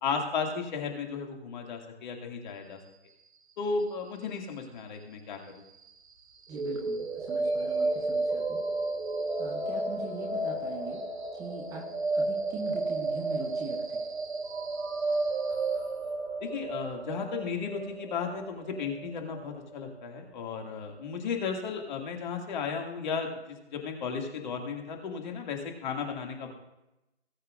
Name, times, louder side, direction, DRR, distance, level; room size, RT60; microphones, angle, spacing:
voice 1, 0.0-2.8 3.6-5.4 16.4-26.5, left 5 dB, 45° left, 2 dB, 2.3 m, -34 dB
voice 2, 6.5-8.6 9.4-11.0 11.4-14.0, right 4 dB, 10° right, 1 dB, 0.8 m, -42 dB
sound 1, 6.5-20.5, right 2 dB, 75° right, 1.4 m, -32 dB
18.5 x 8.6 x 2.5 m, 0.93 s
hypercardioid pair, 145°, 33 cm